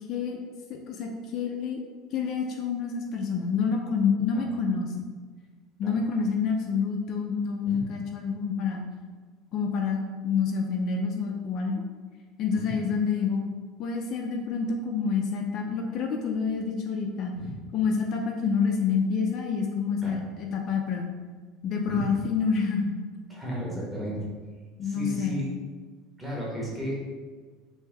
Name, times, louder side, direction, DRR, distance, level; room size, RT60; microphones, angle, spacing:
voice 1, 0.1-0.4 0.7-1.8 2.1-4.9 5.8-8.9 9.5-11.8 12.4-13.4 13.8-17.4 17.7-21.1 21.6-23.0 24.8-25.4, left 5 dB, 50° left, 2 dB, 0.4 m, -28 dB
voice 2, 23.3-24.2 24.8-25.5 26.2-27.0, equal, 10° right, -5 dB, 1.0 m, -34 dB
3.2 x 2.6 x 3.3 m, 1.5 s
supercardioid pair, 135°, 0 cm